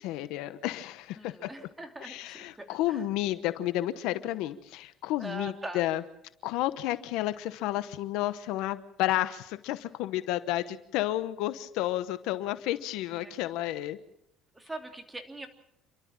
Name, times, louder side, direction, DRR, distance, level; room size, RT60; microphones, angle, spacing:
voice 1, 0.0-1.5 2.0-6.0 6.4-14.0, left 14 dB, 80° left, 13 dB, 1.0 m, -31 dB
voice 2, 1.2-3.1 5.2-5.8 13.1-13.4 14.5-15.5, right 2 dB, 10° right, 4 dB, 3.0 m, -42 dB
29.0 x 12.5 x 7.3 m, 0.77 s
cardioid pair, 115°, 0 cm